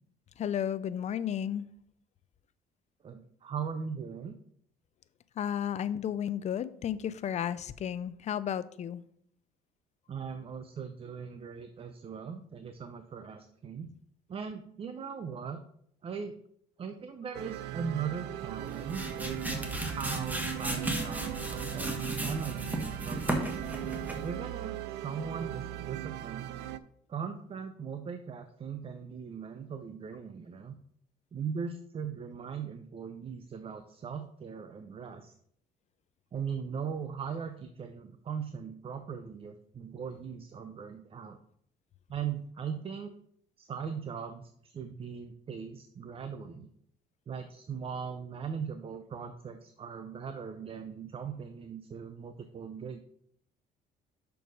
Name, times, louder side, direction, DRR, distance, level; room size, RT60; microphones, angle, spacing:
voice 1, 0.4-1.7 5.4-9.0, left 9 dB, 40° left, 15 dB, 0.5 m, -33 dB
voice 2, 3.0-4.4 10.1-13.9 14.3-15.6 16.0-16.3 16.8-22.0 22.2-23.6 24.2-24.8 25.0-26.5 27.1-30.8 31.3-35.3 36.3-41.4 42.1-43.1 43.6-46.7 47.3-53.0, right 6 dB, 35° right, 8 dB, 0.6 m, -39 dB
sound 1, 17.3-26.8, right 13 dB, 85° right, 0.4 m, -39 dB
sound 2, 18.5-24.4, right 1 dB, 10° right, 1.2 m, -35 dB
6.1 x 4.6 x 5.3 m, 0.67 s
cardioid pair, 110°, 17 cm